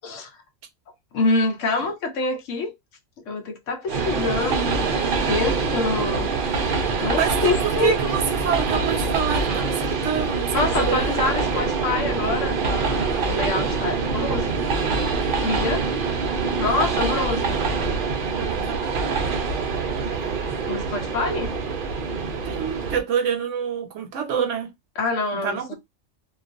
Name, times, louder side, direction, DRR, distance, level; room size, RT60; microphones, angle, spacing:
voice 1, 1.1-2.7 3.3-6.3 6.6-6.7 7.0-8.0 10.5-14.5 15.4-15.9 16.6-17.6 20.6-21.5 25.0-25.7, left 3 dB, 75° left, 1.1 m, -26 dB
Train, 3.9-23.0, right 4 dB, 55° right, 0.7 m, -25 dB
voice 2, 7.2-11.3 18.4-19.3 22.5-24.7 25.4-25.7, right 8 dB, 75° right, 1.0 m, -27 dB
2.4 x 2.3 x 2.5 m
omnidirectional pair, 1.3 m